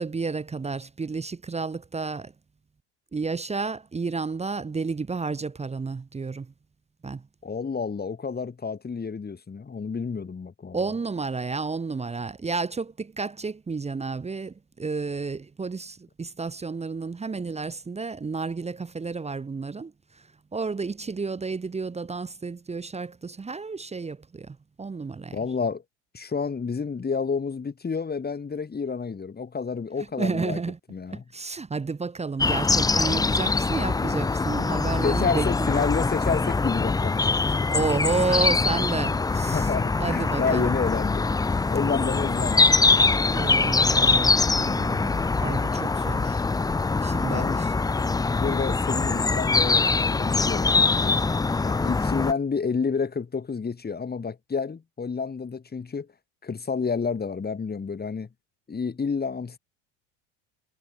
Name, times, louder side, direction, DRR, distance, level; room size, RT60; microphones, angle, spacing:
voice 1, 0.0-2.3 3.1-6.5 7.0-7.2 10.7-25.4 30.2-30.8 31.1-35.9 37.7-39.7 40.0-40.8 43.3-46.4 47.0-47.7, right 4 dB, 15° right, 1.2 m, -31 dB
voice 2, 7.4-10.8 25.3-25.8 26.1-30.6 30.9-31.2 35.0-37.3 39.5-41.3 41.7-42.8 47.3-47.6 48.3-51.3 51.6-56.1 56.4-58.3 58.7-59.6, left 5 dB, 25° left, 7.1 m, -29 dB
sound 1, 32.4-52.3, left 3 dB, 10° left, 0.6 m, -23 dB
hypercardioid pair, 80°, 37 cm